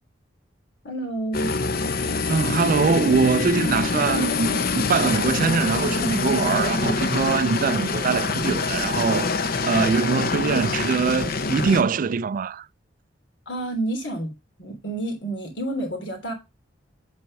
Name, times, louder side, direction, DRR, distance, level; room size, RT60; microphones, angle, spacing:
voice 1, 0.8-1.5 13.4-14.3 14.6-16.3, right 1 dB, 80° left, 3.3 m, -29 dB
sound 1, 1.3-11.8, left 4 dB, 55° left, 0.8 m, -25 dB
voice 2, 2.3-9.3 9.6-12.7, right 5 dB, 45° right, 0.4 m, -23 dB
8.7 x 4.4 x 5.4 m
head